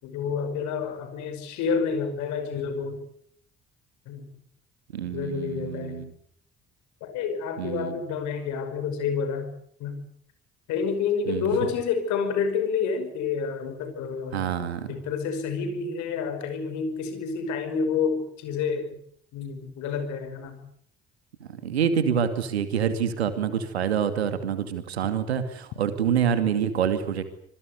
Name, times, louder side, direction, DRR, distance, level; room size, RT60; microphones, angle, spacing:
voice 1, 0.0-3.0 4.1-4.3 5.1-6.0 7.0-9.5 9.8-10.0 10.7-14.4 14.9-19.0 19.3-20.6, left 6 dB, 65° left, 9 dB, 5.5 m, -29 dB
voice 2, 4.9-6.1 7.6-8.0 11.3-11.5 14.3-15.0 21.4-27.2, right 8 dB, 80° right, 10 dB, 2.5 m, -26 dB
27.0 x 22.0 x 8.1 m, 0.67 s
figure-of-eight pair, 45°, 32 cm